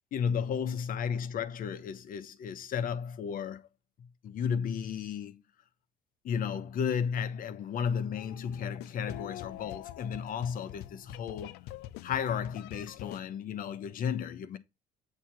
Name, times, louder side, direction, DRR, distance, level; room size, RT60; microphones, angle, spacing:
voice 1, 0.1-3.7 4.0-5.4 6.2-11.6 12.0-14.6, left 7 dB, 55° left, 0.9 m, -33 dB
sound 1, 8.1-13.2, left 14 dB, 90° left, 0.5 m, -45 dB
8.0 x 2.8 x 5.8 m
cardioid pair, 110°, 17 cm